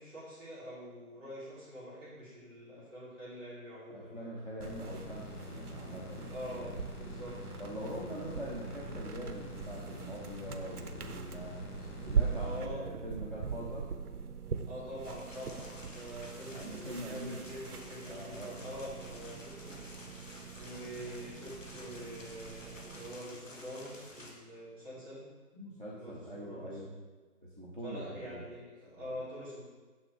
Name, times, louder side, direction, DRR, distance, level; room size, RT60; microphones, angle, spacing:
voice 1, 0.0-4.3 6.3-7.4 12.3-12.9 14.6-19.8 20.5-25.3 25.9-26.8 27.8-29.7, equal, 5° left, -21 dB, 2.4 m, -45 dB
voice 2, 3.9-6.8 7.6-11.6 12.0-13.9 16.5-17.5 18.0-18.6 25.5-27.0 27.6-28.4 29.0-29.1, equal, 35° right, -4 dB, 0.7 m, -43 dB
sound 1, 4.6-12.6, left 2 dB, 80° left, 2.1 m, -47 dB
sound 2, 4.6-23.2, right 6 dB, 75° right, 0.7 m, -41 dB
sound 3, 15.0-24.3, left 1 dB, 55° left, 1.3 m, -51 dB
6.8 x 6.3 x 3.7 m, 1.3 s
figure-of-eight pair, 175°, 46 cm